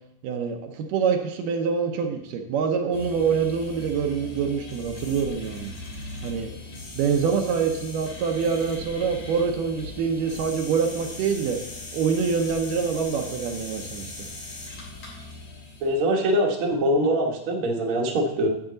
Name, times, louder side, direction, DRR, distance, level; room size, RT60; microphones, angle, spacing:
voice 1, 0.2-5.7 6.2-6.5 7.0-11.6 11.9-14.3, right 6 dB, 75° right, 4 dB, 2.2 m, -25 dB
sound 1, 2.9-16.1, left 2 dB, 80° left, 4.9 m, -39 dB
voice 2, 15.8-18.5, equal, 60° right, 1 dB, 1.5 m, -23 dB
9.7 x 7.5 x 3.8 m, 0.80 s
omnidirectional pair, 4.0 m